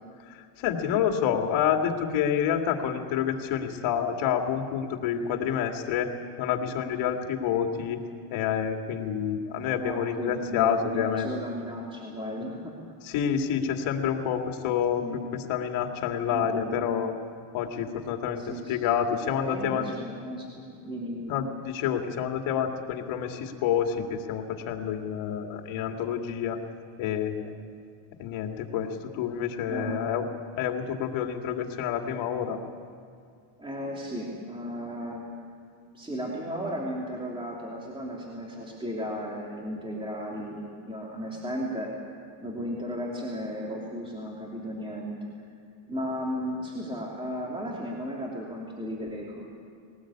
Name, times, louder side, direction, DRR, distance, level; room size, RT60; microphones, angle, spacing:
voice 1, 0.3-6.1 6.4-8.0 8.3-11.3 13.0-17.1 17.5-19.9 21.3-26.6 27.0-27.5 28.2-30.2 30.6-32.6, left 8 dB, 85° left, 4 dB, 2.4 m, -28 dB
voice 2, 9.8-12.7 15.0-15.3 16.3-16.9 18.4-18.8 19.4-21.4 29.7-30.1 33.6-35.2 35.9-41.9 42.4-45.2 45.9-49.5, equal, 10° right, -3 dB, 3.1 m, -35 dB
21.0 x 19.0 x 8.7 m, 2.3 s
cardioid pair, 130°, 46 cm